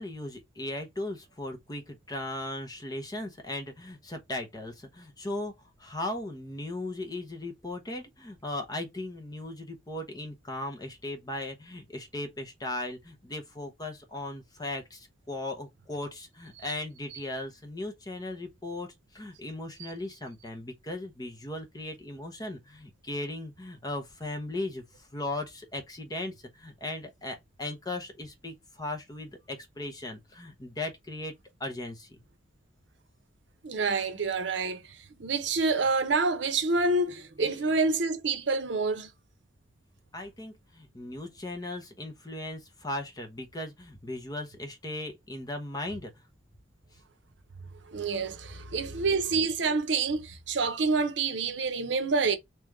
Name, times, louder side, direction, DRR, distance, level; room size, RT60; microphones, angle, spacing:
voice 1, 0.0-5.5 5.8-31.3 31.6-32.2 37.4-37.5 40.1-46.1, left 2 dB, 20° left, 1.0 m, -37 dB
voice 2, 33.6-39.1 47.9-52.4, right 3 dB, 70° right, 0.7 m, -27 dB
3.3 x 3.0 x 3.6 m
head